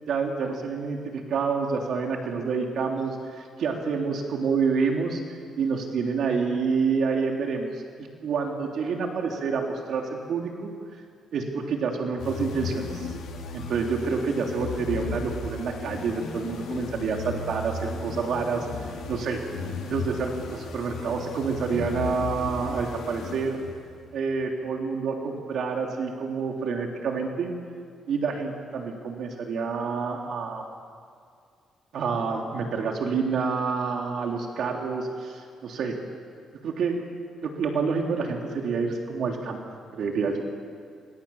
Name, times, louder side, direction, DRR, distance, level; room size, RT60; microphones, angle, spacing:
voice 1, 0.1-5.2 5.6-10.7 11.3-13.1 13.5-18.7 19.1-19.4 19.8-23.6 24.1-27.5 28.1-30.6 31.9-35.9 36.6-37.0 37.4-39.6 39.9-40.4, right 5 dB, 65° right, 1 dB, 3.2 m, -28 dB
sound 1, 12.2-23.9, left 4 dB, 80° left, 3.8 m, -35 dB
28.5 x 25.5 x 7.2 m, 2.3 s
cardioid pair, 110°, 0 cm